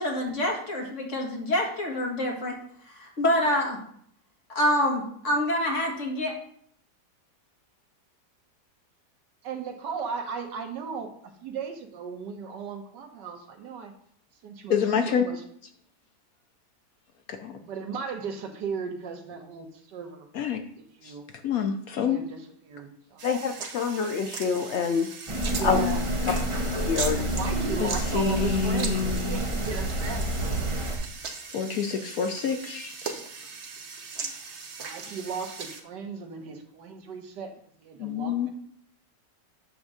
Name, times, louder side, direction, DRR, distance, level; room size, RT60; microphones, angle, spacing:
voice 1, 0.0-2.6 2.9-3.8 4.5-6.3, left 1 dB, 45° left, 0 dB, 2.0 m, -26 dB
voice 2, 9.4-13.9 14.4-15.4 17.6-20.3 20.8-21.2 22.0-22.4 22.6-23.3 25.5-26.0 27.2-30.3 34.8-37.5 37.8-38.5, right 5 dB, 80° right, 5 dB, 1.6 m, -36 dB
voice 3, 14.7-15.3 17.3-17.6 20.3-20.6 21.0-21.1 21.4-22.2 26.3-26.4 27.8-29.4 31.5-33.2 35.1-35.2 38.0-38.5, left 7 dB, 65° left, 6 dB, 1.0 m, -28 dB
voice 4, 23.2-25.1 25.6-25.8 26.9-27.2, left 6 dB, 85° left, 6 dB, 0.6 m, -26 dB
sound 1, 23.2-35.8, right 5 dB, 50° right, 1.0 m, -39 dB
sound 2, 25.3-31.0, equal, 20° right, 1.0 m, -28 dB
8.6 x 3.6 x 6.4 m, 0.63 s
omnidirectional pair, 1.9 m